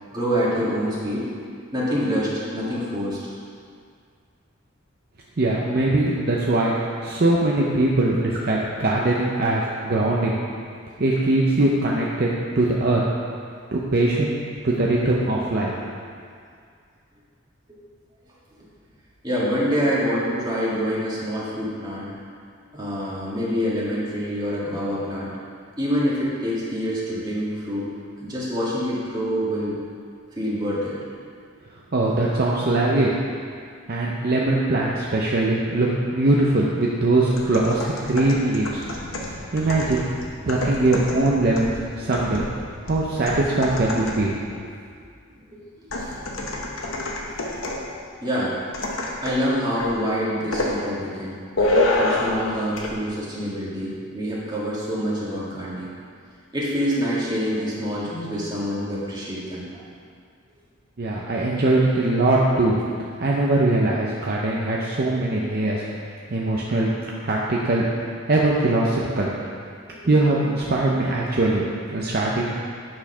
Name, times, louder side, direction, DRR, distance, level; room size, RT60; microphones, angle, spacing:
voice 1, 0.1-1.3 1.7-3.2 17.7-17.8 19.2-22.1 22.7-25.3 25.8-27.9 28.2-29.7 30.3-30.9 45.5-45.6 45.9-46.1 46.4-46.6 47.2-47.7 48.2-48.5 49.2-51.4 51.9-55.9 56.5-59.8, equal, 20° right, -8 dB, 1.8 m, -26 dB
voice 2, 5.4-6.7 7.0-10.4 11.0-12.3 12.5-13.0 13.7-14.3 14.6-15.9 31.9-33.1 33.9-38.8 39.5-40.0 40.5-42.4 42.8-44.3 61.0-62.8 63.2-65.8 66.3-66.9 67.2-67.9 68.3-69.3 70.1-71.6 71.9-72.5, right 2 dB, 50° right, -4 dB, 0.6 m, -21 dB
sound 1, 37.3-44.4 45.9-47.9 48.7-49.5 49.8-50.0 50.5-50.8 51.6-52.5 52.8-52.9, left 2 dB, 80° left, 1.0 m, -28 dB
8.7 x 4.3 x 5.5 m, 2.2 s
head